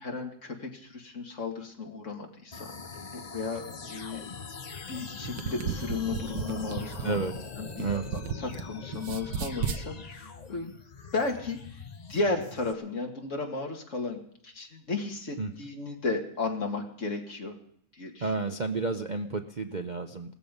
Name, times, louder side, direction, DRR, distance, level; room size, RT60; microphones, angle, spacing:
voice 1, 0.0-4.2 4.9-7.2 7.6-10.7 11.1-11.6 12.1-17.5 17.9-18.6, left 3 dB, 50° left, 2 dB, 2.5 m, -34 dB
sound 1, 2.5-12.7, left 5 dB, 35° left, 0.8 m, -42 dB
sound 2, 5.1-8.6 8.9-9.8, right 7 dB, 75° right, 1.5 m, -34 dB
voice 2, 7.8-8.2 15.4-15.5 18.2-20.3, right 4 dB, 40° right, 6 dB, 0.7 m, -31 dB
17.0 x 14.0 x 5.4 m, 0.67 s
omnidirectional pair, 1.7 m